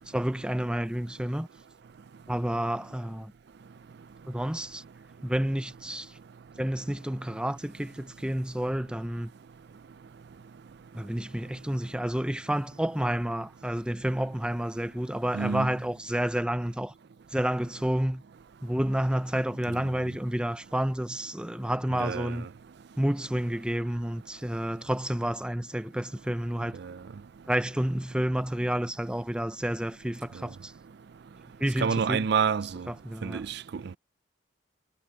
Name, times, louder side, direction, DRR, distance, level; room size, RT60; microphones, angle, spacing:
voice 1, 0.1-1.5 2.3-3.3 4.3-4.8 5.2-6.1 6.6-9.3 10.9-16.9 17.3-18.2 18.6-22.5 23.0-26.8 27.5-30.7 31.6-32.3 32.9-33.4, right 1 dB, 5° right, 0.5 m, -30 dB
voice 2, 15.3-15.7 21.9-22.4 26.8-26.9 31.8-32.9 33.2-33.8, right 6 dB, 55° right, 0.4 m, -28 dB
head